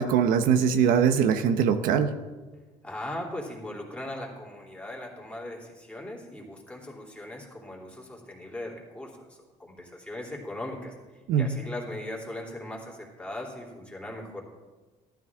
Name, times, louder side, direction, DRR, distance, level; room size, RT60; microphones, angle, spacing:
voice 1, 0.0-2.1 11.3-11.5, right 7 dB, 75° right, 8 dB, 0.9 m, -22 dB
voice 2, 2.8-10.9 11.4-14.4, left 1 dB, 10° left, -2 dB, 3.3 m, -39 dB
15.0 x 13.0 x 3.7 m, 1.3 s
cardioid pair, 115°, 14 cm